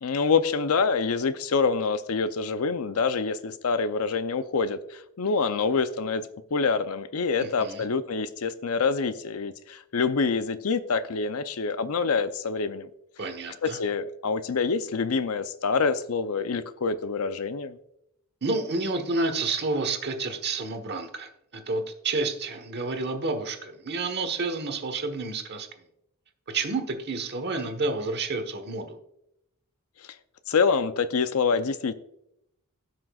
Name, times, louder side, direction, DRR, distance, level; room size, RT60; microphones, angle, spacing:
voice 1, 0.0-6.2 6.5-12.9 13.6-17.8 30.5-31.9, left 5 dB, 70° left, 12 dB, 0.6 m, -26 dB
voice 2, 7.4-7.8 13.2-13.8 18.4-25.7 26.5-29.0, right 3 dB, 50° right, 7 dB, 1.2 m, -30 dB
17.5 x 6.1 x 2.4 m, 0.79 s
head